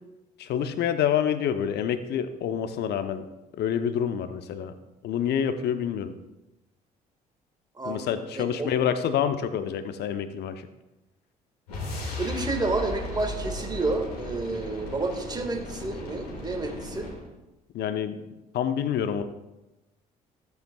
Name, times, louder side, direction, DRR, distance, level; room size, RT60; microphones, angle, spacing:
voice 1, 0.4-3.3 3.6-4.7 5.0-6.1 7.8-10.7 17.7-18.2 18.5-19.2, left 8 dB, 60° left, 10 dB, 0.8 m, -27 dB
voice 2, 7.8-8.7 12.0-17.1, right 3 dB, 20° right, 4 dB, 1.8 m, -30 dB
sound 1, 11.7-17.3, left 1 dB, 85° left, 2.1 m, -36 dB
14.0 x 8.1 x 2.3 m, 1.0 s
hypercardioid pair, 55°, 20 cm